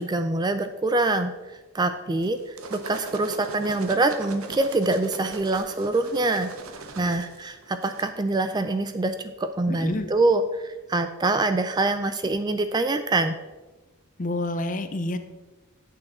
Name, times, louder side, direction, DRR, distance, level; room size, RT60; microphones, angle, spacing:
voice 1, 0.0-1.3 1.7-6.5 7.0-13.3, right 2 dB, 20° right, 9 dB, 0.3 m, -25 dB
sound 1, 2.2-8.1, right 3 dB, 85° right, 0.8 m, -40 dB
voice 2, 9.7-10.1 14.2-15.2, left 2 dB, 35° left, 9 dB, 0.6 m, -28 dB
8.8 x 6.5 x 4.2 m, 1.2 s
head